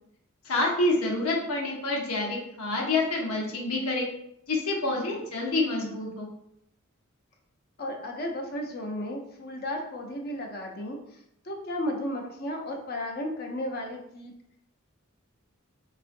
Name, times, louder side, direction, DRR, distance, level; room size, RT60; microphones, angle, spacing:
voice 1, 0.4-4.1 4.5-6.3, left 2 dB, 90° left, -1 dB, 0.8 m, -27 dB
voice 2, 7.8-11.2 11.4-14.3, left 1 dB, 45° left, 1 dB, 0.6 m, -34 dB
3.6 x 2.4 x 2.5 m, 0.75 s
head